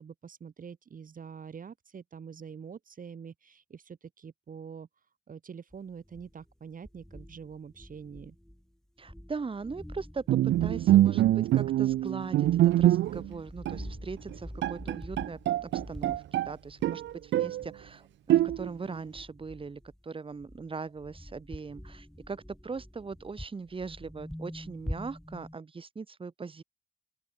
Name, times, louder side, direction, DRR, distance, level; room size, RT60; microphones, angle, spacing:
voice 1, 0.0-4.9 5.3-8.4, right 6 dB, 45° right, 2.8 m, -45 dB
sound 1, 5.7-6.5 6.8-8.7 9.0-20.0 20.3-25.6, equal, ahead, 2.3 m, -46 dB
voice 2, 9.0-10.3 10.6-26.6, right 4 dB, 25° right, 1.3 m, -40 dB
Bowed string instrument, 10.3-13.3 13.7-13.9 14.3-14.4 14.6-16.5 16.8-17.6 18.3-18.9, right 13 dB, 65° right, 0.6 m, -24 dB
open air
cardioid pair, 90°, 20 cm